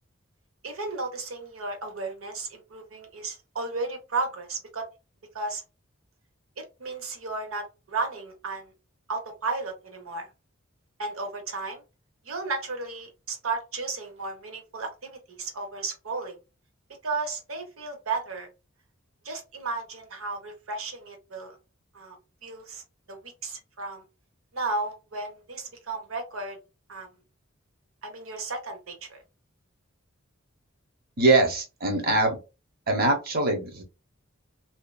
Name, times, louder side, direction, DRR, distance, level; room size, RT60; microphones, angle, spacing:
voice 1, 0.6-4.9 5.3-5.6 6.6-8.7 9.1-10.3 11.0-11.8 12.2-16.4 17.0-18.5 19.2-21.5 21.9-22.2 22.4-22.8 23.1-24.0 24.5-26.6 26.9-27.1 28.0-29.2, right 3 dB, 80° right, 0.9 m, -34 dB
voice 2, 31.2-32.4 32.9-33.8, right 2 dB, 45° right, 0.8 m, -22 dB
2.7 x 2.4 x 2.2 m
head